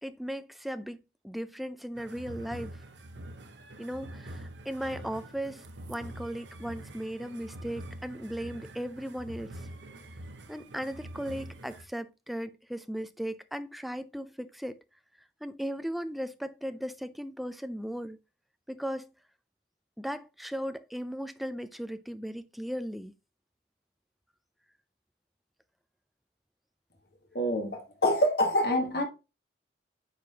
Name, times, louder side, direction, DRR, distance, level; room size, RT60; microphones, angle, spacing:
voice 1, 0.0-2.8 3.8-9.7 10.5-14.8 15.4-18.2 18.7-19.1 20.0-23.1, equal, ahead, 0.4 m, -37 dB
sound 1, 1.9-11.8, right 1 dB, 80° right, 0.9 m, -45 dB
voice 2, 27.3-29.0, left 1 dB, 60° left, 1.4 m, -26 dB
9.4 x 4.4 x 2.8 m
head